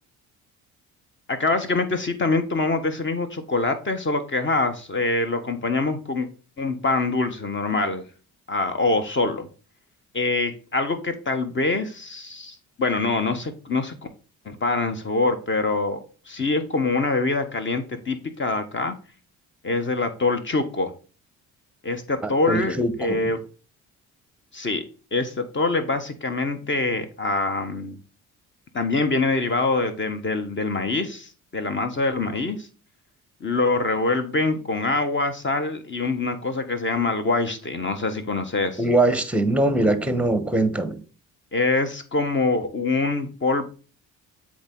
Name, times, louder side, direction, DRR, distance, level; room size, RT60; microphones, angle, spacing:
voice 1, 1.3-6.3 6.6-8.0 8.5-9.5 10.1-13.9 14.4-16.0 16.3-18.9 19.6-20.9 21.8-23.4 24.5-24.8 25.1-28.0 28.7-32.7 33.4-38.8 41.5-43.7, left 3 dB, 30° left, 1.3 m, -24 dB
voice 2, 22.2-23.3 38.8-41.0, right 2 dB, 5° right, 1.0 m, -22 dB
7.8 x 3.2 x 3.9 m
supercardioid pair, 60°, 36 cm